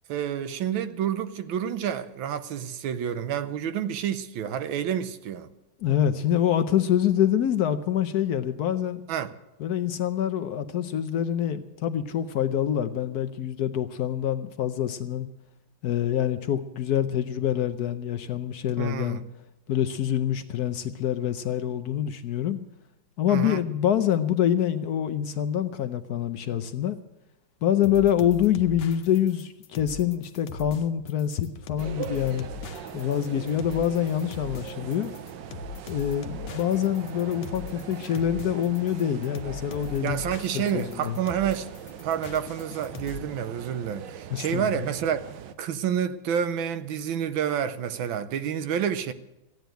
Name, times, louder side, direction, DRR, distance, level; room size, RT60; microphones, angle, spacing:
voice 1, 0.1-5.5 9.1-9.3 18.8-19.2 23.3-23.6 40.0-41.7 42.0-45.2 45.6-49.1, right 9 dB, 90° right, 1.6 m, -29 dB
voice 2, 5.8-9.0 9.6-15.3 15.8-19.2 19.7-22.6 23.2-27.0 27.6-32.5 32.9-35.1 35.9-40.2 40.5-41.1 44.3-44.6, left 10 dB, 65° left, 1.0 m, -26 dB
sound 1, 27.8-43.2, left 6 dB, 90° left, 1.6 m, -40 dB
sound 2, 31.8-45.5, right 8 dB, 70° right, 1.5 m, -41 dB
14.5 x 9.3 x 9.0 m
omnidirectional pair, 2.1 m